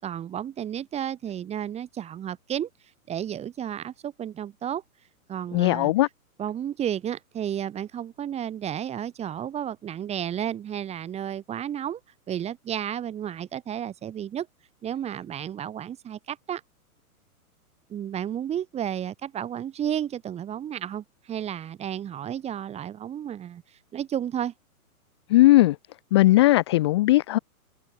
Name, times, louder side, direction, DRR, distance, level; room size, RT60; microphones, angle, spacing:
voice 1, 0.0-2.7 3.1-4.8 5.3-5.9 6.4-12.0 12.3-14.5 14.8-16.6 17.9-23.6 23.9-24.5, right 10 dB, 15° right, 3.9 m, -32 dB
voice 2, 5.5-6.1 25.3-25.8 26.1-27.4, left 17 dB, 20° left, 0.6 m, -18 dB
hypercardioid pair, 155°, 44 cm